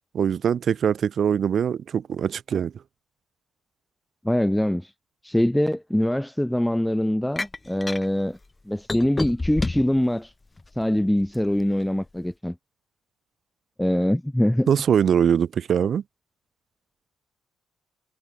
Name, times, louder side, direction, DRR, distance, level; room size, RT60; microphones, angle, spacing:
voice 1, 0.0-2.7 14.7-16.0, right 8 dB, 55° right, 0.6 m, -22 dB
voice 2, 4.2-4.9 5.2-8.4 8.7-10.3 10.8-12.5 13.8-14.7, left 1 dB, 5° left, 0.8 m, -23 dB
sound 1, 7.4-8.1 8.9-10.0 10.6-11.5, left 3 dB, 20° left, 1.5 m, -28 dB
cardioid pair, 90°, 0 cm